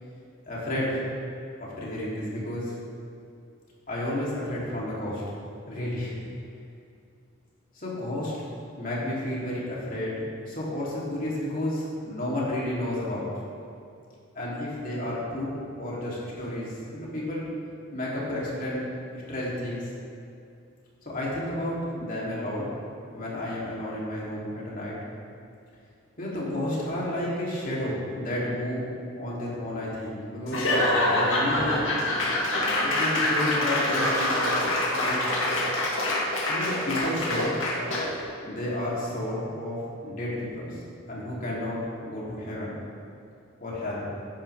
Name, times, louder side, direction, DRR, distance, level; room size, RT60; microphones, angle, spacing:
voice 1, 0.5-1.0 1.6-2.7 3.9-5.2 5.7-6.1 7.7-8.3 8.8-13.3 14.3-15.5 15.8-17.5 17.9-18.9 19.1-19.8 21.0-22.7 23.1-25.0 26.2-32.0 32.7-34.6 34.9-35.2 36.5-37.6 38.4-40.8 41.1-42.8 43.6-44.1, left 1 dB, 45° left, -6 dB, 3.2 m, -31 dB
Laughter / Applause / Crowd, 30.5-38.2, left 1 dB, 80° left, 2.0 m, -25 dB
14.0 x 10.5 x 3.5 m, 2.5 s
head